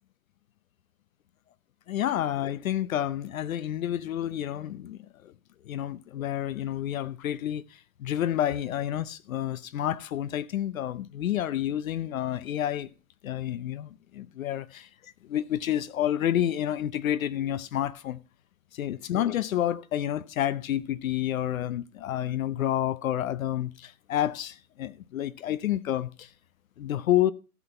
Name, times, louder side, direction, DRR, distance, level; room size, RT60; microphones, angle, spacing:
voice 1, 1.9-5.3 5.7-12.9 13.2-18.2 18.7-26.3 26.8-27.3, left 11 dB, 60° left, 0.7 m, -29 dB
15.0 x 6.0 x 5.4 m
hypercardioid pair, 160°, 45 cm